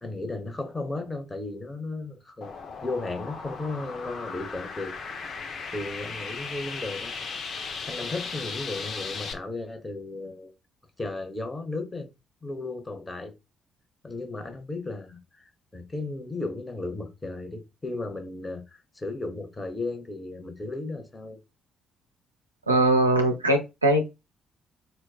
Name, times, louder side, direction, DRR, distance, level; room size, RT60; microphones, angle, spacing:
voice 1, 0.0-2.5 2.8-4.9 5.7-10.5 11.0-12.1 12.4-13.3 14.0-21.4, left 2 dB, 20° left, 0.9 m, -35 dB
sound 1, 2.4-9.3, left 5 dB, 50° left, 0.6 m, -36 dB
voice 2, 22.7-24.1, right 1 dB, 85° right, 0.4 m, -21 dB
4.3 x 2.2 x 2.3 m
figure-of-eight pair, 40°, 0 cm